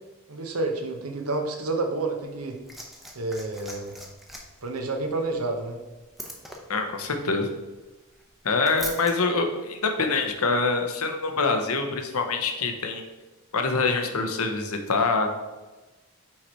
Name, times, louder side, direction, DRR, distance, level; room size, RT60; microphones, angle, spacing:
voice 1, 0.3-2.6 3.1-4.0 4.6-5.8, right 2 dB, 75° right, 4 dB, 0.9 m, -29 dB
Liquid, 2.2-9.1 10.2-10.3, equal, ahead, 0.7 m, -43 dB
voice 2, 6.7-7.5 8.4-13.0 13.5-15.3, left 4 dB, 75° left, 5 dB, 0.8 m, -25 dB
5.7 x 4.8 x 4.3 m, 1.1 s
head